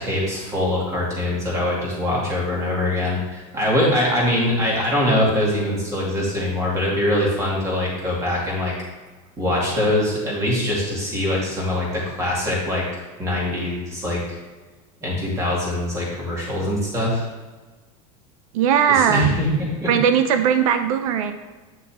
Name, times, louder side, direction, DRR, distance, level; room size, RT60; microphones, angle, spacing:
voice 1, 0.0-8.7 9.4-12.8 13.2-14.4 15.0-17.3 18.9-19.9, left 1 dB, 15° right, -4 dB, 2.4 m, -23 dB
voice 2, 18.5-19.3 19.9-21.3, right 8 dB, 85° right, 9 dB, 0.7 m, -19 dB
9.0 x 6.3 x 3.6 m, 1.3 s
supercardioid pair, 175°, 18 cm